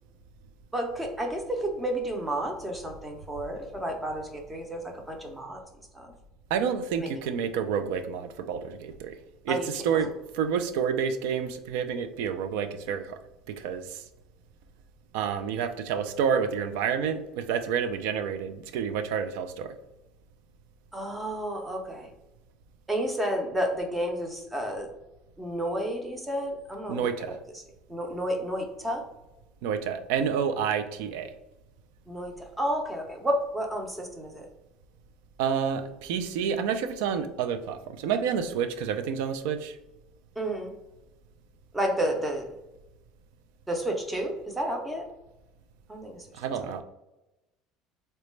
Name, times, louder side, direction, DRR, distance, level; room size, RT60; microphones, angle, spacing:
voice 1, 0.7-5.6 5.9-6.1 7.0-7.1 9.5-10.1 20.9-22.1 22.9-24.9 25.4-27.6 27.9-29.0 32.1-34.5 40.4-40.7 41.7-42.5 43.7-45.1 45.9-46.3, right 1 dB, 10° right, 2 dB, 0.5 m, -31 dB
voice 2, 6.5-9.1 9.4-10.1 10.3-13.2 13.5-14.0 15.1-19.7 26.9-27.4 29.6-31.3 35.4-39.8 46.4-46.8, right 7 dB, 90° right, 9 dB, 0.4 m, -29 dB
3.8 x 2.2 x 3.1 m, 0.96 s
cardioid pair, 160°, 0 cm